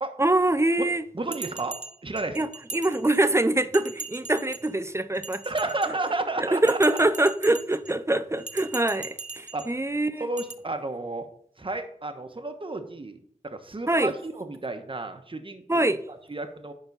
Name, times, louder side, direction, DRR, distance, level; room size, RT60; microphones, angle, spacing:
voice 1, 0.2-1.0 2.3-5.4 6.4-10.3 13.9-14.1 15.7-16.0, right 2 dB, 20° right, 0.6 m, -24 dB
voice 2, 1.1-1.8 2.0-2.5 5.4-7.0 9.5-9.7 10.2-11.2 11.6-16.7, right 2 dB, 40° right, 1.1 m, -32 dB
Bell, 1.3-3.4 3.7-4.7 5.1-6.2 6.7-7.9 8.4-9.7 10.4-10.5, right 4 dB, 65° right, 0.8 m, -40 dB
10.5 x 4.0 x 5.4 m
wide cardioid pair, 55°, 13 cm